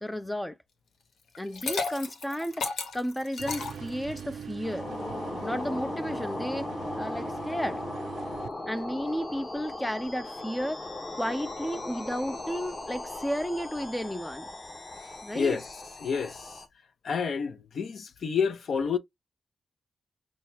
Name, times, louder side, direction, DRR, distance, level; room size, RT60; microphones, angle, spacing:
voice 1, 0.0-0.6 1.4-4.9 5.4-6.7 7.0-7.8 8.7-10.9 11.1-14.5 15.2-15.6, equal, 5° left, 0.4 m, -33 dB
Liquid, 1.3-4.4, left 4 dB, 85° left, 1.2 m, -34 dB
sound 1, 3.4-8.5, right 7 dB, 85° right, 0.4 m, -41 dB
sound 2, 4.6-16.7, left 2 dB, 25° left, 1.0 m, -38 dB
voice 2, 15.3-15.7 16.0-16.5 17.0-19.0, left 6 dB, 60° left, 0.8 m, -29 dB
6.4 x 2.2 x 2.7 m
wide cardioid pair, 165°, 0 cm